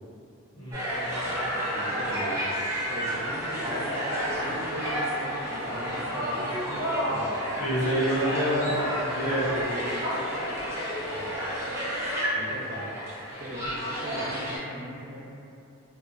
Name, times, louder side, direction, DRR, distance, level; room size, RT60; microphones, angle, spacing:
voice 1, 0.5-1.3 7.6-8.7 9.0-9.6, equal, 70° left, -10 dB, 0.9 m, -28 dB
sound 1, 0.7-14.6, equal, 15° right, 0.3 m, -30 dB
voice 2, 1.6-2.4 2.9-3.9 4.3-7.3 11.0-11.3 12.3-12.9 13.4-15.2, equal, 70° right, -8 dB, 0.7 m, -39 dB
2.3 x 2.0 x 2.5 m, 2.7 s
head